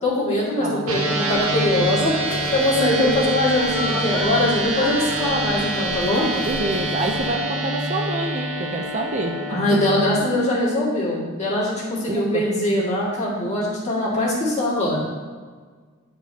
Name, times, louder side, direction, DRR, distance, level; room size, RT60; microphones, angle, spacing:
voice 1, 0.0-6.3 9.5-15.0, left 1 dB, 30° left, -7 dB, 2.1 m, -22 dB
voice 2, 0.6-1.4 2.8-3.4 6.3-9.4 9.7-9.8 12.1-12.4, right 2 dB, 35° right, 3 dB, 0.5 m, -27 dB
sound 1, 0.9-10.2, right 1 dB, 70° right, 0.9 m, -26 dB
sound 2, 1.3-7.4, left 2 dB, 75° left, 1.0 m, -33 dB
10.0 x 4.7 x 2.8 m, 1.5 s
head